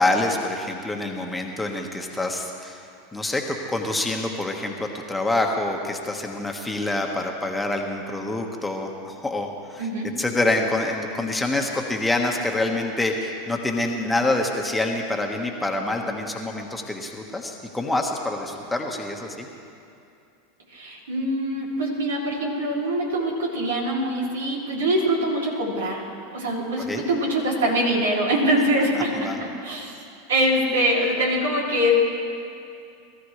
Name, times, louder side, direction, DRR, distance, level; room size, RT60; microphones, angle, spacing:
voice 1, 0.0-2.8 3.1-19.5 26.8-27.0 28.9-29.4, left 2 dB, 10° left, 1 dB, 1.6 m, -26 dB
voice 2, 20.7-26.0 26.3-29.9 30.3-31.9, right 1 dB, 80° right, -2 dB, 3.2 m, -24 dB
21.5 x 14.0 x 3.3 m, 2.6 s
hypercardioid pair, 90°, 0 cm